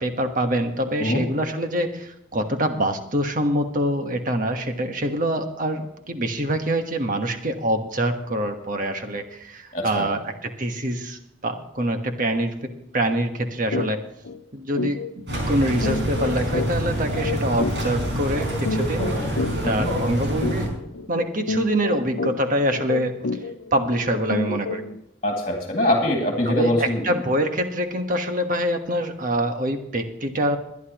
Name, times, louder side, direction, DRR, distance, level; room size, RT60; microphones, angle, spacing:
voice 1, 0.0-12.5 12.9-14.0 14.5-20.7 21.1-23.1 23.7-24.8 26.4-30.6, right 1 dB, 45° right, 6 dB, 1.3 m, -25 dB
voice 2, 9.7-10.2 19.6-19.9 25.2-27.1, left 1 dB, 35° left, 0 dB, 2.3 m, -23 dB
sound 1, 13.7-13.9 14.2-14.4 14.8-25.0, left 3 dB, 85° left, 0.7 m, -30 dB
sound 2, 15.3-20.7, equal, 65° right, 5.2 m, -26 dB
21.5 x 11.0 x 3.0 m, 0.83 s
head